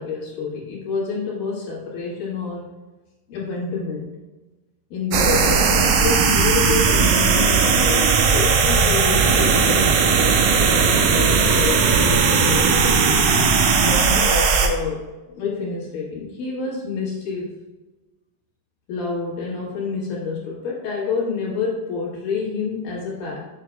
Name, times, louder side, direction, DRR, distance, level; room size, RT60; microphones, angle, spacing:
voice 1, 0.0-2.7 3.3-4.1 4.9-8.0 8.3-10.3 10.7-13.2 13.8-15.0 15.3-17.5 18.9-23.4, left 4 dB, 85° left, -4 dB, 3.5 m, -28 dB
sound 1, 5.1-14.7, right 5 dB, 80° right, 2.4 m, -17 dB
7.4 x 6.7 x 2.3 m, 1.1 s
omnidirectional pair, 4.0 m